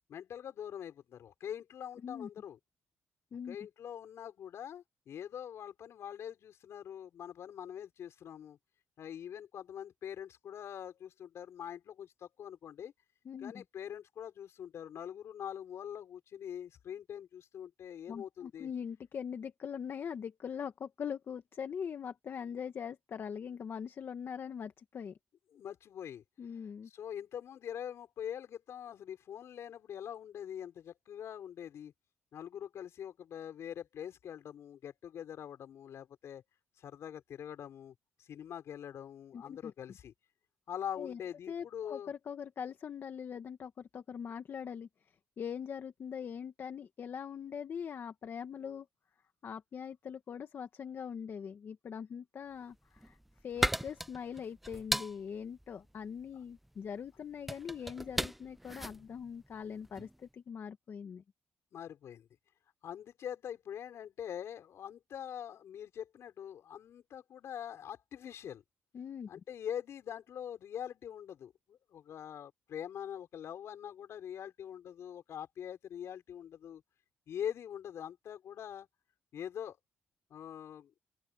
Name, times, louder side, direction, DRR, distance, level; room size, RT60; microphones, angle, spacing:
voice 1, 0.1-2.6 3.5-8.6 9.0-12.9 13.4-18.7 25.5-26.2 26.9-31.9 32.3-36.4 36.8-40.1 40.7-42.1 61.7-62.3 62.8-68.6 69.3-76.8 77.3-78.9 79.3-79.8 80.3-80.9, left 9 dB, 70° left, 6.1 m, -44 dB
voice 2, 13.2-13.6 18.1-25.2 26.4-26.9 39.3-39.7 41.0-41.2 41.5-48.9 49.4-53.2 53.4-61.2 68.9-69.3, left 7 dB, 55° left, 1.5 m, -42 dB
sound 1, 52.7-60.2, equal, 5° right, 0.4 m, -38 dB
open air
cardioid pair, 95°, 5 cm